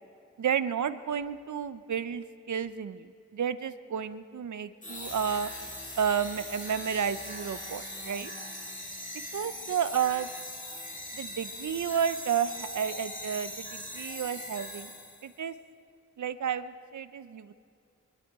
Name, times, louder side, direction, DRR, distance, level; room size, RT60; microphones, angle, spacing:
voice 1, 0.4-5.5 5.9-8.3 9.3-10.3 11.1-14.9 15.2-15.5 16.2-17.5, right 8 dB, 75° right, 13 dB, 0.7 m, -31 dB
sound 1, 4.8-15.3, left 1 dB, 25° left, 2.4 m, -41 dB
23.0 x 11.5 x 4.7 m, 2.5 s
cardioid pair, 55°, 30 cm